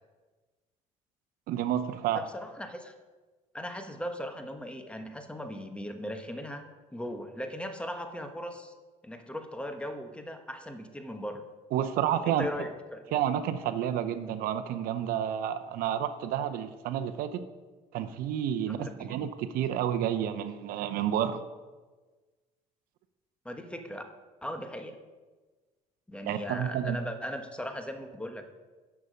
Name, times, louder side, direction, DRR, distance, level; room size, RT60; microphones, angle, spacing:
voice 1, 1.5-2.2 11.7-12.5 13.1-17.4 17.9-21.4 26.2-27.0, right 10 dB, 75° right, 10 dB, 0.7 m, -30 dB
voice 2, 2.1-2.9 3.5-6.7 6.9-8.7 9.0-11.4 12.2-13.2 18.7-19.3 23.4-24.0 24.4-25.0 26.1-28.4, equal, 5° left, 6 dB, 1.2 m, -38 dB
11.0 x 7.0 x 5.2 m, 1.3 s
supercardioid pair, 80°, 15 cm